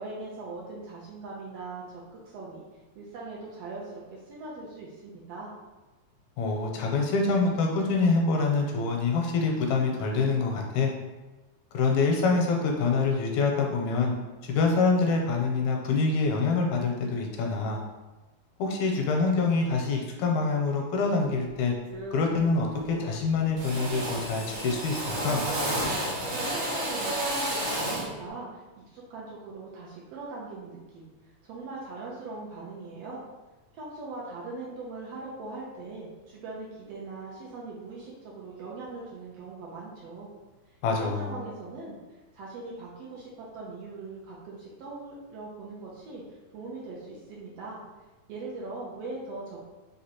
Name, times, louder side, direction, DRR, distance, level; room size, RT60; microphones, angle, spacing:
voice 1, 0.0-2.6 2.9-5.5 25.8-28.6 28.9-31.1 31.4-33.2 33.7-40.3 40.9-42.0 42.3-46.2 46.5-47.8 48.3-49.7, right 3 dB, 75° right, -4 dB, 1.6 m, -40 dB
voice 2, 6.4-10.9 11.7-14.1 14.4-17.8 18.6-21.7 22.1-25.4 40.8-41.4, left 4 dB, 85° left, 1 dB, 2.0 m, -25 dB
Drill, 21.2-21.5 21.9-22.4 22.6-23.2 23.6-28.2, right 1 dB, 55° right, 1.7 m, -31 dB
4.9 x 3.4 x 2.9 m, 1.2 s
omnidirectional pair, 3.4 m